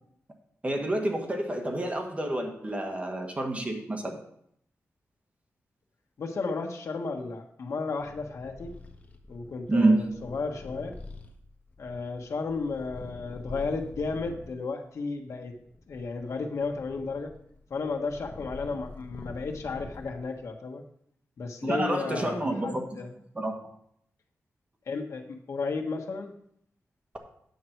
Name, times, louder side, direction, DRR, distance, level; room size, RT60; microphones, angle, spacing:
voice 1, 0.6-4.2 9.7-10.1 21.6-22.9 23.3-23.6, right 2 dB, 25° right, 3 dB, 1.6 m, -28 dB
voice 2, 6.2-8.7 9.3-10.9 11.8-15.5 15.9-17.3 17.7-20.8 21.4-23.1 24.9-26.3, left 4 dB, 75° left, 2 dB, 1.4 m, -33 dB
Purr, 8.0-14.5 15.2-20.4, left 2 dB, 30° left, 1.3 m, -46 dB
9.6 x 7.6 x 4.6 m, 0.71 s
wide cardioid pair, 85°, 5 cm